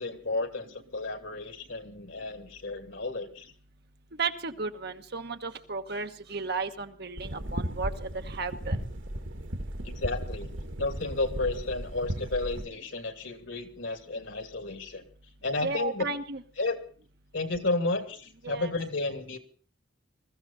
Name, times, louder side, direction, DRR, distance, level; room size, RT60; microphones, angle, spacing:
voice 1, 0.0-3.5 9.8-10.5 10.8-15.0 15.4-16.0 16.6-16.8 17.3-19.4, left 2 dB, 90° left, 7 dB, 2.7 m, -32 dB
voice 2, 4.1-8.8 15.6-16.4 18.4-18.7, right 4 dB, 60° right, 7 dB, 1.3 m, -34 dB
sound 1, 7.2-12.7, right 1 dB, 85° right, 1.8 m, -35 dB
21.0 x 14.5 x 4.2 m, 0.41 s
head